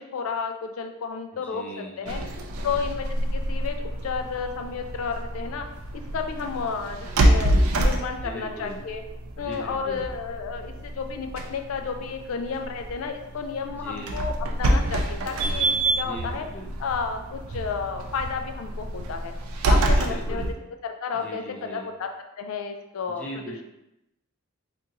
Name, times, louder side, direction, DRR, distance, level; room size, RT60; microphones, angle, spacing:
voice 1, 0.0-2.2 2.6-5.6 6.1-7.5 7.8-9.0 9.4-14.3 14.6-16.4 16.8-19.3 19.7-20.4 20.8-21.4 21.7-22.1 22.4-23.3, left 5 dB, 80° left, 5 dB, 0.4 m, -32 dB
voice 2, 1.3-2.4 8.2-8.8 9.4-10.1 13.7-14.2 16.0-16.7 19.9-20.6 21.1-21.9 23.1-23.6, equal, 5° left, -4 dB, 0.5 m, -39 dB
sound 1, 2.1-20.5, right 1 dB, 90° right, 0.4 m, -27 dB
3.7 x 2.5 x 2.9 m, 0.90 s
head